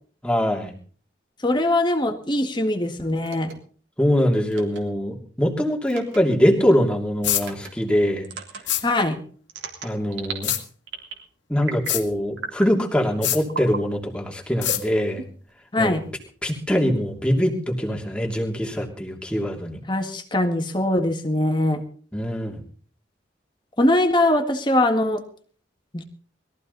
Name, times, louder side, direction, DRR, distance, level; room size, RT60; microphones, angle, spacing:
voice 1, 0.2-0.8 4.0-8.3 9.8-10.5 11.5-15.3 15.8-15.9 16.4-19.8 22.1-22.6, equal, 5° left, 0 dB, 2.9 m, -23 dB
voice 2, 1.4-3.5 8.8-9.2 15.7-16.1 19.9-21.8 23.8-25.2 25.9-26.0, left 1 dB, 25° left, 5 dB, 1.8 m, -21 dB
sound 1, 3.2-3.5 4.5-4.8 5.9-6.2 7.4-7.7 8.2-8.6 9.5-10.5 10.9-11.2 11.6-12.0 12.4-12.7 13.5-13.8 14.6-15.5, right 5 dB, 85° right, 3.4 m, -34 dB
sound 2, 7.2-7.4 8.7-8.8 10.4-10.6 11.9-12.0 13.2-13.4 14.6-14.8, left 13 dB, 80° left, 1.9 m, -23 dB
21.5 x 14.5 x 4.1 m, 0.44 s
head